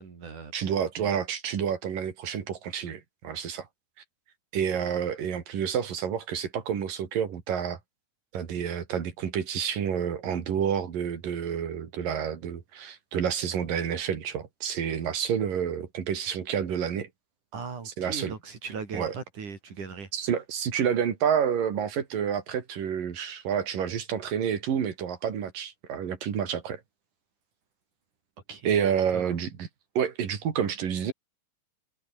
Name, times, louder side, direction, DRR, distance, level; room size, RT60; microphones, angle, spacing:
voice 1, 0.0-0.5 1.0-1.1 17.5-20.1 28.5-29.3, right 5 dB, 65° right, 5.6 m, -39 dB
voice 2, 0.5-3.7 4.5-7.8 8.3-17.1 17.9-18.3 18.9-19.1 20.1-26.8 28.7-29.7 30.0-31.1, right 8 dB, 85° right, 4.5 m, -29 dB
omnidirectional pair, 3.8 m